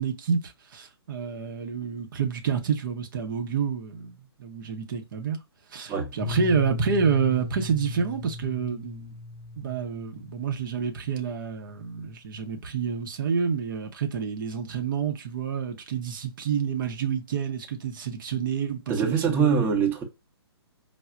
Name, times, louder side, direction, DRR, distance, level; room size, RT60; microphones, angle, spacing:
voice 1, 0.0-5.4 5.7-9.1 9.6-19.7, right 6 dB, 50° right, 0.6 m, -28 dB
Piano, 6.2-11.8, left 2 dB, 25° left, 0.6 m, -38 dB
voice 2, 18.9-20.0, right 6 dB, 15° right, 0.7 m, -23 dB
4.6 x 2.0 x 2.3 m
figure-of-eight pair, 130°, 14 cm